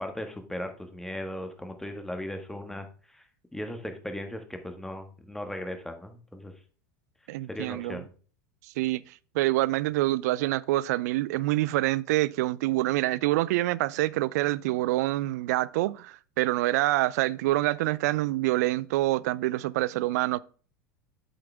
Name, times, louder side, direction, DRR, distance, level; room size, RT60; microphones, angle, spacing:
voice 1, 0.0-2.8 3.1-3.2 3.5-6.5 7.5-8.1, left 1 dB, 5° left, 1.6 m, -37 dB
voice 2, 7.3-8.0 8.8-20.4, right 17 dB, 60° right, 0.4 m, -26 dB
7.8 x 7.7 x 3.4 m
hypercardioid pair, 85°, 10 cm